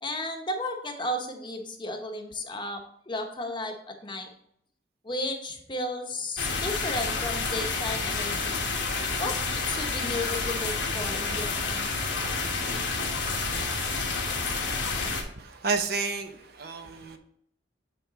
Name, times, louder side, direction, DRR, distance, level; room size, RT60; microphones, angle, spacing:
voice 1, 0.0-4.3 5.0-8.6 9.2-12.0, left 1 dB, 25° left, 4 dB, 0.9 m, -34 dB
sound 1, 6.4-15.2, left 4 dB, 65° left, 1.2 m, -29 dB
voice 2, 15.4-17.2, right 4 dB, 55° right, 6 dB, 0.8 m, -31 dB
8.9 x 3.5 x 4.0 m, 0.69 s
head